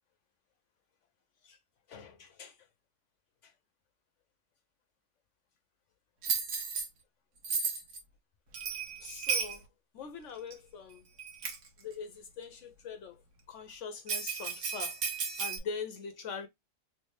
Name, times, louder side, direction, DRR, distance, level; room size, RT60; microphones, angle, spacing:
voice 1, 1.9-2.6 3.4-3.5 9.0-9.6 9.9-11.1 11.8-13.2 13.5-15.0 15.4-16.5, left 6 dB, 65° left, 0.7 m, -42 dB
Bell, 6.2-6.9 7.4-8.0 8.5-9.6 10.5-10.6 11.2-11.7 14.1-15.6, right 6 dB, 85° right, 1.6 m, -34 dB
3.2 x 3.1 x 3.1 m
omnidirectional pair, 1.7 m